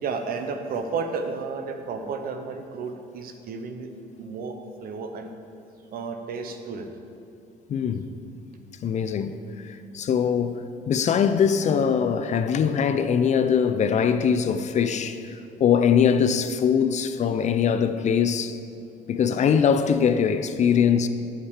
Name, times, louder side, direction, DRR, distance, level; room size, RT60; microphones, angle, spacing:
voice 1, 0.0-3.9 4.2-5.3 5.9-6.9, right 4 dB, 60° right, 0.9 m, -32 dB
voice 2, 7.7-8.1 8.8-18.6 19.1-21.1, left 7 dB, 45° left, 0.5 m, -22 dB
8.6 x 7.3 x 4.9 m
cardioid pair, 110°, 17 cm